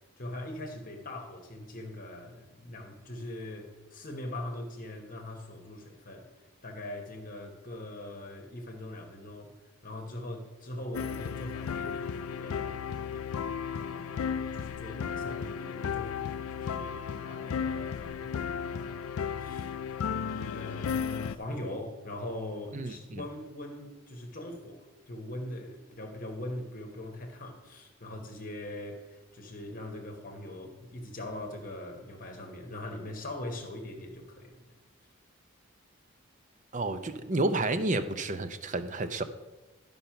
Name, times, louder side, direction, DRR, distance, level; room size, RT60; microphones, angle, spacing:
voice 1, 0.2-6.3 6.6-9.5 9.8-12.7 13.1-13.4 13.7-14.2 14.5-18.3 18.6-19.7 20.3-34.7, left 1 dB, 40° left, 1.1 m, -41 dB
sound 1, 10.9-21.4, left 7 dB, 90° left, 0.4 m, -34 dB
voice 2, 22.7-23.2 36.7-39.2, right 2 dB, 35° right, 0.6 m, -30 dB
12.0 x 5.4 x 5.7 m
head